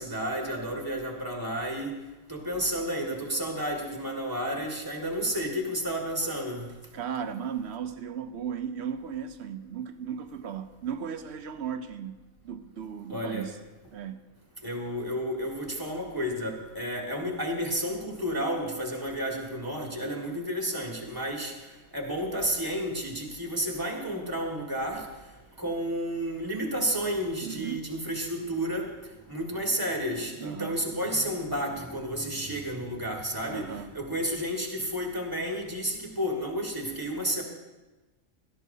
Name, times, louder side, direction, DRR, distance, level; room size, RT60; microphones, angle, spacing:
voice 1, 0.0-2.0 2.3-6.7 13.1-13.5 14.6-21.5 21.9-25.1 25.6-28.9 29.3-37.4, equal, 15° right, 0 dB, 1.9 m, -31 dB
voice 2, 6.9-12.2 12.4-13.6 13.9-14.3 27.4-27.9 30.4-30.8 33.5-33.9, right 8 dB, 65° right, 10 dB, 0.8 m, -36 dB
17.0 x 13.5 x 2.8 m, 1.1 s
omnidirectional pair, 1.4 m